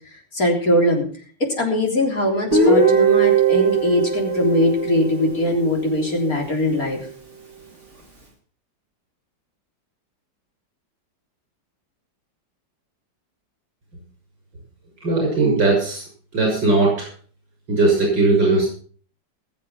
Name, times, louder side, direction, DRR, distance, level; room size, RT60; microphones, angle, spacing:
voice 1, 0.3-1.1 1.4-7.0, left 1 dB, 50° left, 0 dB, 4.2 m, -21 dB
Guitar, 2.5-6.3, right 5 dB, 35° right, 3.8 m, -19 dB
voice 2, 15.0-16.0 16.3-17.1 17.7-18.7, right 3 dB, 75° right, -1 dB, 6.7 m, -18 dB
20.5 x 7.6 x 5.8 m, 0.43 s
omnidirectional pair, 2.0 m